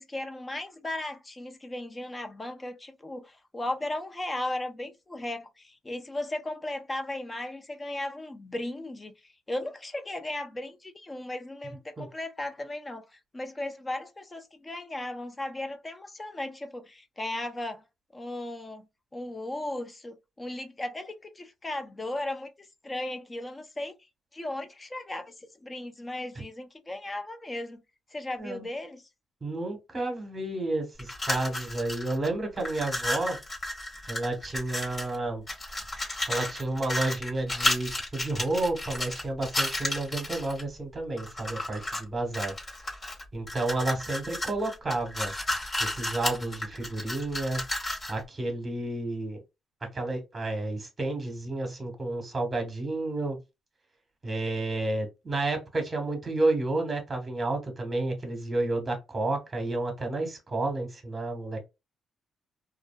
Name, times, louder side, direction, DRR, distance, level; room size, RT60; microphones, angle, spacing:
voice 1, 0.0-17.8 18.1-18.9 19.1-23.9 24.3-27.8 28.1-29.0, left 1 dB, 20° left, 0.6 m, -36 dB
voice 2, 29.4-33.4 34.1-35.4 36.3-42.5 43.3-45.3 45.8-47.6 48.1-49.4 49.8-53.4 54.2-61.7, right 2 dB, 25° right, 1.1 m, -31 dB
sound 1, 31.0-32.3 32.6-35.2 35.5-40.6 41.2-42.0 42.3-48.2, left 1 dB, 40° left, 1.5 m, -32 dB
2.5 x 2.5 x 2.2 m
cardioid pair, 90°, 0 cm